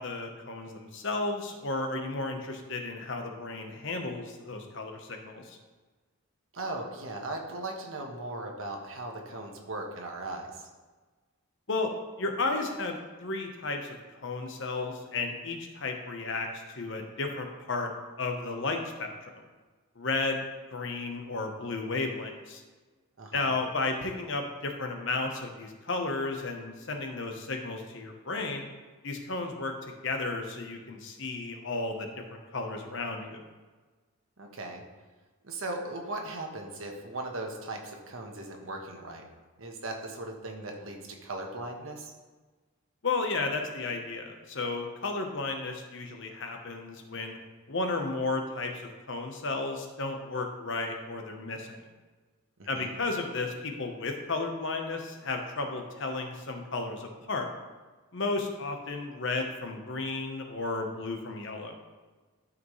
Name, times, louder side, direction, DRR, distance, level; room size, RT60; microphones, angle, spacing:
voice 1, 0.0-5.6 11.7-11.9 12.2-17.9 18.2-19.4 20.0-20.4 20.7-22.6 23.3-28.7 29.0-29.7 30.0-33.4 43.0-47.4 47.7-51.8 52.7-57.5 58.1-61.7, left 3 dB, 60° left, 3 dB, 1.0 m, -33 dB
voice 2, 6.5-10.5 23.2-23.5 34.4-34.8 35.4-39.3 39.6-42.1 52.6-52.9, right 2 dB, 70° right, 2 dB, 1.3 m, -38 dB
12.5 x 5.0 x 3.2 m, 1.3 s
head